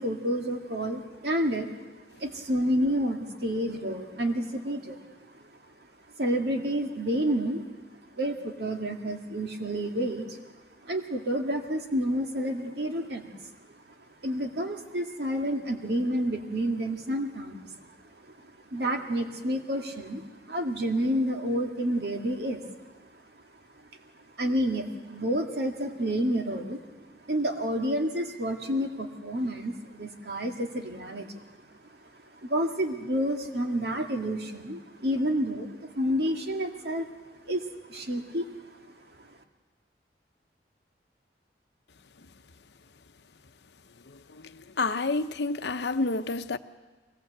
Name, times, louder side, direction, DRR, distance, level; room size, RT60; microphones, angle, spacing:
voice 1, 0.0-1.7 2.2-5.0 6.2-7.7 8.1-10.4 10.8-13.4 14.2-17.8 18.7-22.6 24.4-26.8 27.3-31.5 32.4-37.1 37.5-38.5, equal, 65° right, 2.0 m, -29 dB
voice 2, 44.3-46.6, left 3 dB, 70° left, 0.8 m, -29 dB
23.0 x 18.5 x 8.0 m
head